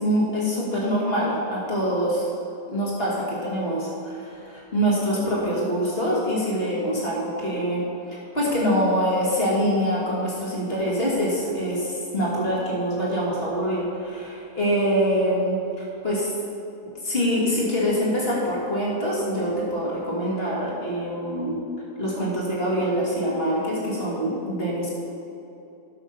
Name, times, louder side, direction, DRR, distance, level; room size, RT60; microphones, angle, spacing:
voice 1, 0.0-2.3 2.7-7.8 8.1-16.3 16.8-21.6 22.0-24.9, equal, 35° left, -6 dB, 2.6 m, -25 dB
12.5 x 6.3 x 5.6 m, 2.8 s
omnidirectional pair, 1.7 m